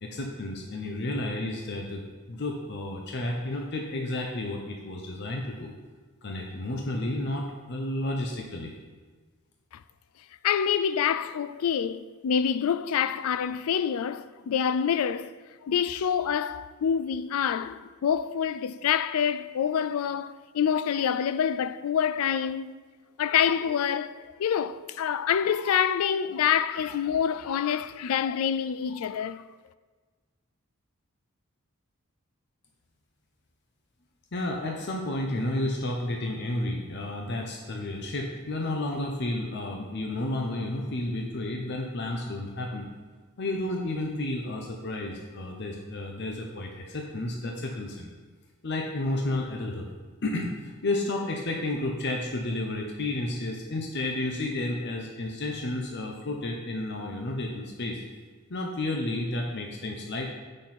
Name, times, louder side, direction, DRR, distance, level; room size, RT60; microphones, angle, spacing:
voice 1, 0.0-2.0 2.3-5.7 6.2-8.7 34.3-42.9 43.4-48.1 48.6-49.9 50.2-58.0 58.5-60.3, left 1 dB, 55° left, 0.8 m, -31 dB
voice 2, 10.4-15.3 15.6-22.7 23.2-29.4, left 8 dB, 85° left, 0.4 m, -26 dB
7.7 x 6.3 x 4.3 m
head